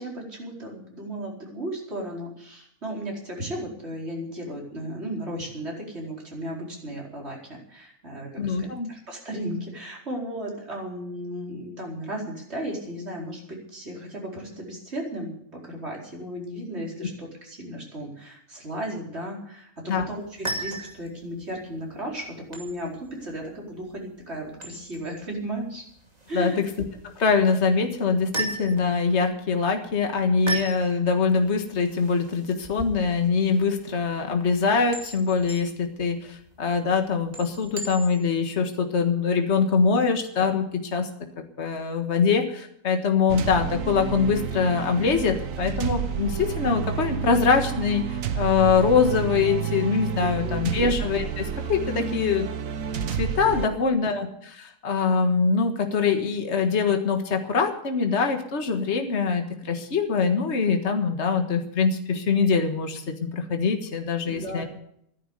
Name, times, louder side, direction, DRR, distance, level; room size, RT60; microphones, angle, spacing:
voice 1, 0.0-25.8 26.3-26.6 50.2-50.8 53.6-53.9 64.3-64.7, right 1 dB, 50° right, -2 dB, 5.0 m, -35 dB
voice 2, 8.4-8.9 17.0-17.1 19.9-20.0 26.3-26.7 27.0-41.1 41.4-52.5 53.2-64.6, left 5 dB, 50° left, 5 dB, 1.8 m, -23 dB
sound 1, 20.2-38.4, right 2 dB, 25° right, 2.6 m, -39 dB
sound 2, 43.3-53.7, right 8 dB, 70° right, 1.3 m, -30 dB
13.5 x 10.5 x 8.0 m, 0.70 s
omnidirectional pair, 1.5 m